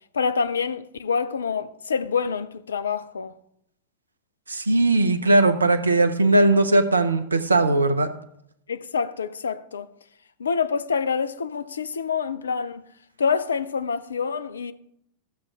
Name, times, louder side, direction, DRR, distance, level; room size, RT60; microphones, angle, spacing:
voice 1, 0.1-3.4 8.7-9.9 10.4-12.9 13.2-14.7, left 6 dB, 70° left, 0.5 m, -26 dB
voice 2, 4.5-8.1, right 2 dB, 80° right, 0.8 m, -19 dB
13.5 x 6.6 x 3.5 m
figure-of-eight pair, 90°, 0 cm